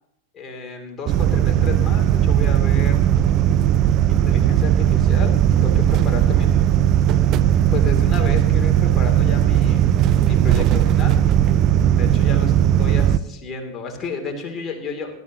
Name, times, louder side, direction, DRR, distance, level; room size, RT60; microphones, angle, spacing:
voice 1, 0.3-3.0 4.1-6.6 7.7-9.8 10.2-11.2 12.0-12.5 12.8-15.1, left 3 dB, 25° left, 2 dB, 2.6 m, -31 dB
sound 1, 1.1-13.2, right 10 dB, 35° right, 0.5 m, -17 dB
20.0 x 12.5 x 2.8 m, 0.84 s
figure-of-eight pair, 90°, 0 cm